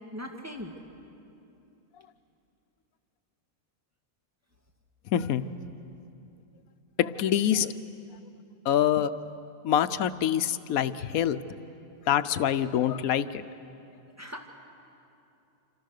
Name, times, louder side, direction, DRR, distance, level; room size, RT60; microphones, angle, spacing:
voice 1, 0.1-0.7 14.2-14.5, left 1 dB, 10° right, 1 dB, 2.0 m, -39 dB
voice 2, 5.1-5.4 7.0-7.7 8.7-9.1 9.6-11.4 12.1-13.4, left 10 dB, 90° left, 13 dB, 1.2 m, -25 dB
27.0 x 26.5 x 6.6 m, 2.8 s
omnidirectional pair, 1.4 m